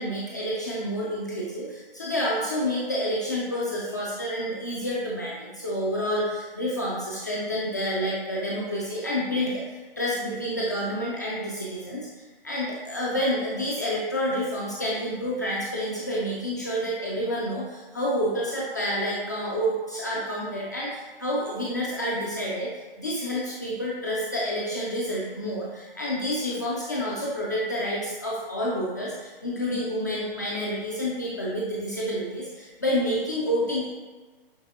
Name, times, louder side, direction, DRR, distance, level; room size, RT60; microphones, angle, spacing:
voice 1, 0.0-9.6 10.0-22.7 23.0-33.9, equal, 20° left, -6 dB, 0.3 m, -29 dB
5.8 x 3.0 x 2.6 m, 1.3 s
figure-of-eight pair, 135°, 30 cm